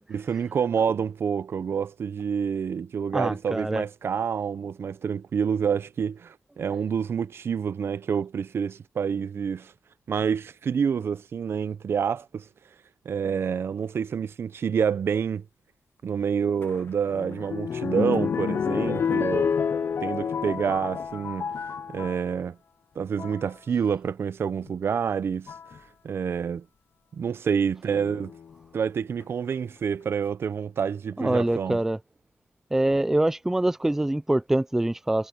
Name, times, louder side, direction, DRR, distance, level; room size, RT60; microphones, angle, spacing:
voice 1, 0.1-9.7 10.1-12.5 13.0-15.4 16.0-19.5 20.0-21.5 21.9-22.6 23.0-25.5 26.0-26.6 27.1-28.3 28.7-31.8, right 7 dB, 60° right, 0.6 m, -28 dB
voice 2, 3.1-3.9 31.2-32.0 32.7-35.3, right 1 dB, 10° right, 0.4 m, -24 dB
sound 1, 16.6-22.3 23.0-23.4 24.7-24.8 25.5-25.8 27.9-28.5 29.2-29.3 29.5-29.6, left 6 dB, 50° left, 0.5 m, -29 dB
wide cardioid pair, 140°, 5 cm